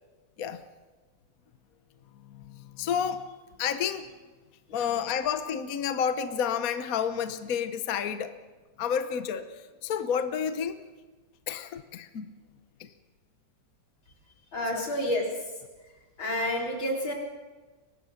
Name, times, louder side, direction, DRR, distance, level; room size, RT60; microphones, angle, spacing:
voice 1, 2.2-3.3 3.6-4.1 4.7-8.3 8.8-10.8 11.5-12.3 12.8-12.9 14.7-14.9, left 7 dB, 55° left, 10 dB, 1.3 m, -30 dB
voice 2, 14.5-15.3 16.2-17.1, left 1 dB, 85° left, 0 dB, 4.6 m, -29 dB
23.5 x 19.0 x 6.6 m, 1.3 s
omnidirectional pair, 2.1 m